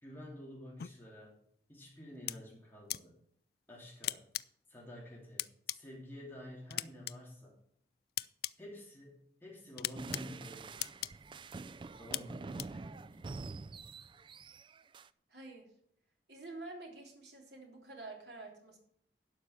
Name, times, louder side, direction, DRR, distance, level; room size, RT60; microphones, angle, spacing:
voice 1, 0.0-1.4 1.7-3.1 3.7-4.2 4.7-7.6 8.6-11.1 12.0-13.3, left 1 dB, 10° left, -4 dB, 2.9 m, -50 dB
sound 1, 0.8-0.9 2.3-2.4 2.9-3.0 4.0-4.4 5.4-5.8 6.7-7.1 8.2-8.5 9.8-10.2 10.8-11.1 12.1-12.2 12.6-12.7, left 15 dB, 60° left, 0.3 m, -36 dB
sound 2, 10.0-15.1, right 3 dB, 30° right, 0.3 m, -46 dB
voice 2, 15.3-15.7 16.3-18.8, right 2 dB, 75° right, 0 dB, 3.2 m, -48 dB
12.0 x 5.6 x 8.0 m, 0.68 s
head